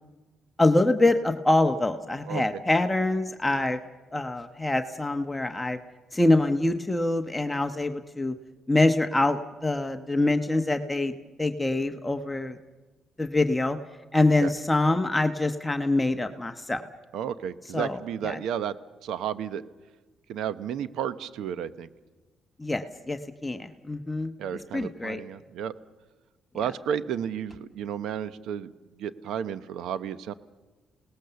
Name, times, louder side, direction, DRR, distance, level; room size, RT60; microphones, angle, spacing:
voice 1, 0.6-3.8 4.1-5.8 6.1-8.3 8.7-11.1 11.4-12.6 13.2-13.8 14.1-16.8 17.7-18.0 18.2-18.4 22.6-24.3 24.7-25.2, left 2 dB, 15° left, 7 dB, 1.1 m, -25 dB
voice 2, 17.1-18.7 19.0-19.6 20.3-21.9 24.4-25.7 26.5-28.7 29.0-30.3, right 9 dB, 80° right, 15 dB, 0.9 m, -32 dB
28.5 x 19.0 x 6.9 m, 1.2 s
cardioid pair, 90°, 0 cm